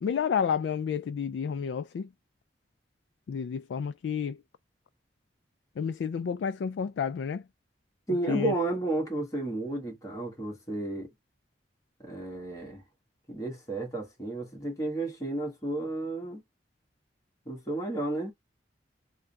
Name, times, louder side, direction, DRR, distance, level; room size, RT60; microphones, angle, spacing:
voice 1, 0.0-2.1 3.3-4.4 5.8-7.4 8.3-8.5, left 7 dB, 75° left, 0.3 m, -30 dB
voice 2, 8.1-11.1 12.0-12.8 13.3-16.4 17.4-18.3, right 2 dB, 20° left, 1.3 m, -32 dB
3.6 x 2.2 x 4.0 m
head